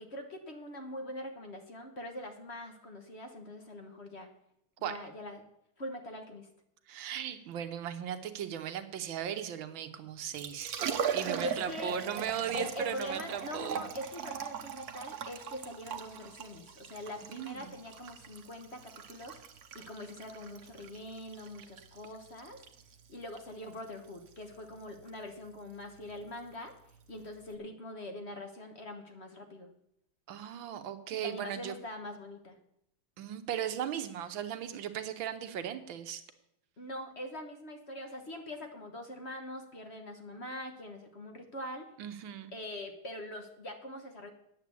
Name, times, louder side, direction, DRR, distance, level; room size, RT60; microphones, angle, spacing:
voice 1, 0.0-4.3 4.8-5.5 5.8-6.5 11.4-12.0 12.5-19.4 19.7-22.6 23.1-26.7 27.1-29.7 31.1-32.6 36.8-41.8 42.5-44.3, left 1 dB, 40° left, 4 dB, 1.2 m, -43 dB
voice 2, 6.9-10.7 11.1-13.8 17.3-17.7 30.3-31.8 33.2-36.2 42.0-42.5, right 9 dB, 75° right, 8 dB, 1.7 m, -37 dB
Liquid, 10.2-27.5, right 7 dB, 55° right, 1.2 m, -41 dB
9.4 x 7.7 x 8.4 m, 0.78 s
omnidirectional pair, 2.2 m